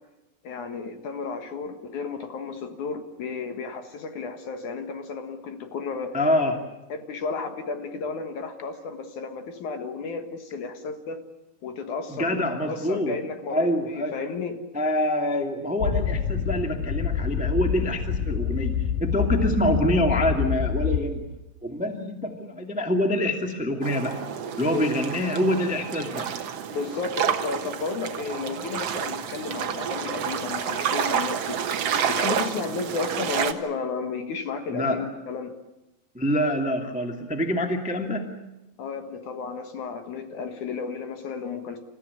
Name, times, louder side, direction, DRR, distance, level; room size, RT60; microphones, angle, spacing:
voice 1, 0.4-6.2 6.9-11.2 11.6-14.6 24.7-24.9 26.7-31.6 32.1-35.6 38.8-41.8, left 4 dB, 60° left, 7 dB, 2.7 m, -33 dB
voice 2, 6.1-6.6 12.1-13.1 13.5-14.1 14.7-18.7 19.0-21.2 21.6-24.1 24.6-26.3 34.7-35.0 36.1-38.3, equal, 5° right, 4 dB, 1.4 m, -25 dB
sound 1, 15.8-21.0, left 7 dB, 85° left, 4.6 m, -26 dB
sound 2, 23.8-33.5, right 8 dB, 55° right, 1.8 m, -29 dB
28.5 x 15.5 x 9.7 m, 0.99 s
omnidirectional pair, 4.4 m